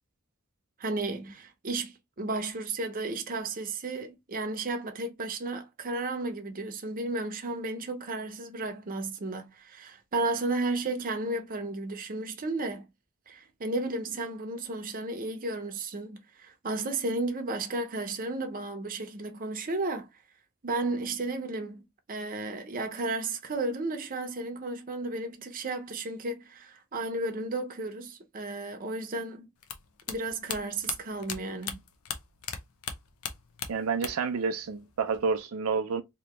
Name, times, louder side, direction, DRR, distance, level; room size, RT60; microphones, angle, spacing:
voice 1, 0.8-12.9 13.3-20.2 20.6-29.5 30.1-31.8, right 2 dB, 40° right, 0.7 m, -33 dB
sound 1, 29.6-32.6 32.8-34.4 34.6-35.4, left 7 dB, 80° left, 0.7 m, -37 dB
voice 2, 33.7-36.0, right 5 dB, 75° right, 0.5 m, -29 dB
2.9 x 2.7 x 3.2 m
head